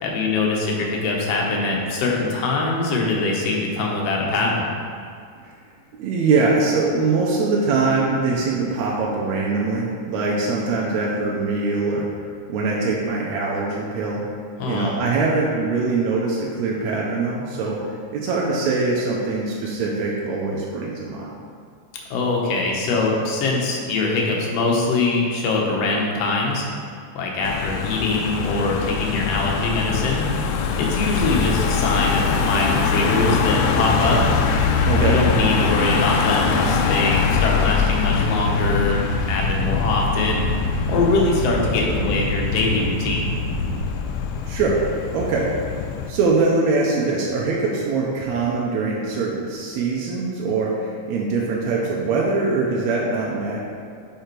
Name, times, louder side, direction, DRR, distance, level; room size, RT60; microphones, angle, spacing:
voice 1, 0.0-4.7 14.6-14.9 22.1-26.6 27.2-30.3 30.8-34.3 35.0-40.5 40.9-43.3, left 3 dB, 65° left, -1 dB, 1.8 m, -23 dB
voice 2, 5.9-12.1 12.5-14.2 14.7-21.3 34.9-35.2 44.5-44.8 45.1-45.5 46.1-53.6, right 3 dB, 75° right, -3 dB, 1.9 m, -22 dB
Car passing by / Engine, 27.4-46.1, left 6 dB, 85° left, 2.0 m, -23 dB
sound 1, 31.2-43.8, equal, 50° right, 2.0 m, -28 dB
5.5 x 5.1 x 4.5 m, 2.3 s
omnidirectional pair, 3.5 m